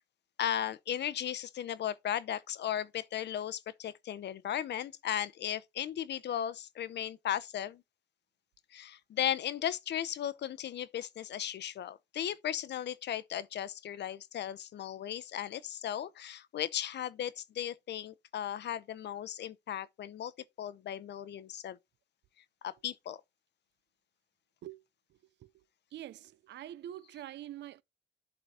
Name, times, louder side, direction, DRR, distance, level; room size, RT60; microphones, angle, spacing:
voice 1, 0.4-7.8 8.7-20.3 20.6-21.8 22.6-23.2, left 10 dB, 60° left, 0.7 m, -36 dB
voice 2, 25.9-27.8, right 12 dB, 65° right, 0.5 m, -45 dB
11.0 x 3.9 x 4.2 m
cardioid pair, 90°, 20 cm